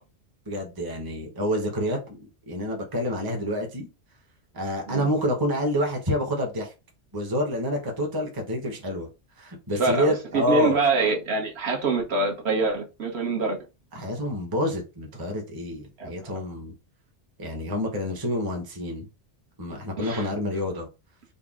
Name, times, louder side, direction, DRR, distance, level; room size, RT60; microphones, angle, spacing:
voice 1, 0.5-2.2 2.5-3.9 4.5-6.7 7.1-9.1 9.4-10.8 13.9-16.7 17.4-19.1 19.6-20.9, equal, 20° right, 0.8 m, -28 dB
voice 2, 9.8-13.6 16.0-16.1 20.0-20.3, right 3 dB, 60° right, 1.1 m, -25 dB
4.0 x 2.0 x 3.6 m
omnidirectional pair, 1.3 m